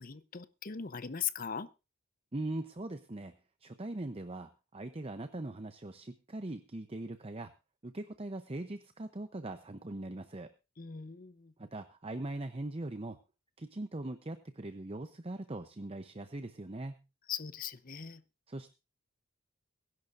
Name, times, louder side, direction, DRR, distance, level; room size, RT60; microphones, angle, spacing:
voice 1, 0.0-1.7 10.8-11.5 17.3-18.2, left 8 dB, 40° left, 14 dB, 0.8 m, -39 dB
voice 2, 2.3-3.3 3.6-7.5 7.8-10.5 11.6-13.2 13.6-17.0 18.5-18.7, right 2 dB, 25° right, 9 dB, 0.7 m, -41 dB
23.0 x 11.0 x 2.6 m, 0.29 s
head